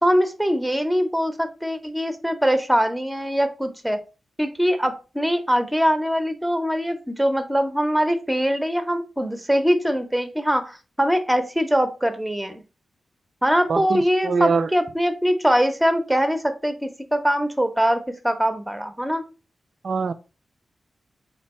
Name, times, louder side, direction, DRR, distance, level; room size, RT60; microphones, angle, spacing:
voice 1, 0.0-4.0 4.4-12.6 13.4-19.2, equal, 5° right, 0.6 m, -22 dB
voice 2, 13.7-14.7 19.8-20.1, right 5 dB, 60° right, 0.4 m, -23 dB
4.4 x 2.3 x 4.1 m
wide cardioid pair, 110°, 0 cm